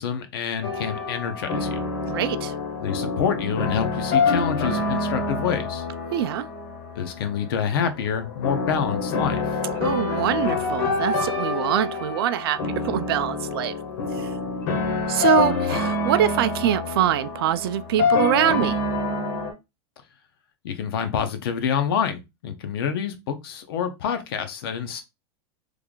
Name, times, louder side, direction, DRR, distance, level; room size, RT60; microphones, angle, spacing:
voice 1, 0.0-1.8 2.8-5.8 6.9-9.6 20.6-25.0, left 7 dB, 65° left, 0.8 m, -27 dB
sound 1, 0.6-19.5, left 4 dB, 45° left, 1.0 m, -26 dB
voice 2, 2.1-2.5 6.1-6.5 9.7-13.7 14.1-14.3 15.1-18.8, right 11 dB, 70° right, 0.4 m, -24 dB
3.2 x 2.4 x 3.7 m
supercardioid pair, 170°, 13 cm